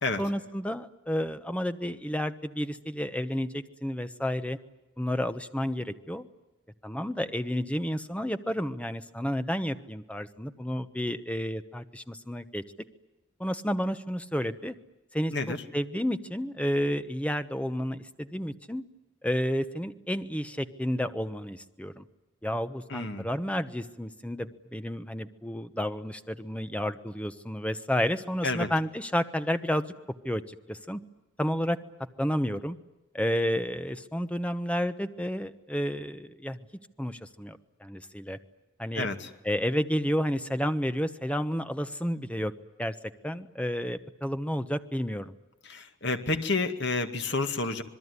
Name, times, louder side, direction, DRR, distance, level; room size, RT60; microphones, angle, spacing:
voice 1, 0.2-4.6 5.0-6.3 6.8-12.6 13.4-14.7 15.1-18.8 19.2-22.0 22.4-29.8 30.2-31.0 31.4-31.8 32.2-32.8 33.1-36.6 37.0-38.4 38.8-39.1 39.4-42.5 42.8-42.9 43.2-45.3, equal, 5° left, 10 dB, 1.0 m, -31 dB
voice 2, 22.9-23.3 28.4-28.7 39.0-39.3 45.7-47.8, left 3 dB, 55° left, 7 dB, 2.1 m, -29 dB
26.5 x 21.0 x 9.8 m, 1.0 s
head